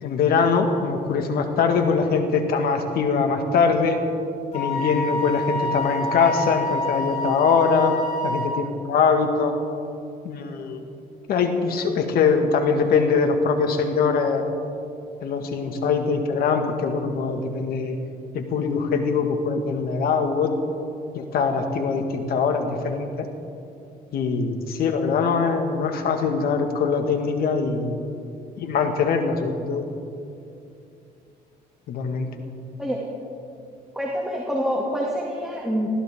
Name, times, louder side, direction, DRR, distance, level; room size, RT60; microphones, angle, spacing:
voice 1, 0.0-4.0 4.5-7.9 8.2-9.5 10.2-10.8 11.3-14.4 15.2-18.0 18.3-20.5 21.1-23.3 24.1-28.0 28.6-29.8 31.9-32.3, left 5 dB, 65° left, 5 dB, 1.9 m, -22 dB
Wind instrument woodwind instrument, 4.5-8.5, left 2 dB, 40° left, 4.1 m, -27 dB
voice 2, 33.9-35.9, equal, ahead, -4 dB, 2.4 m, -26 dB
24.5 x 16.0 x 3.7 m, 2.6 s
cardioid pair, 110°, 17 cm